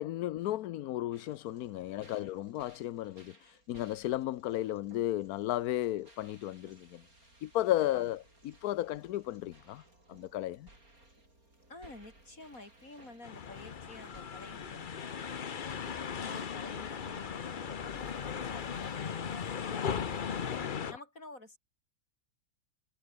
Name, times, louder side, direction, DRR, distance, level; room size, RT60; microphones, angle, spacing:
voice 1, 0.0-7.0 7.4-8.2 8.4-9.8 10.1-10.7 20.5-20.8, left 14 dB, 85° left, 1.1 m, -34 dB
sound 1, 1.1-20.6, right 2 dB, 70° right, 8.2 m, -60 dB
voice 2, 11.7-21.6, left 2 dB, 65° left, 6.7 m, -52 dB
sound 2, 13.2-20.9, left 7 dB, 40° left, 0.9 m, -37 dB
omnidirectional pair, 1.6 m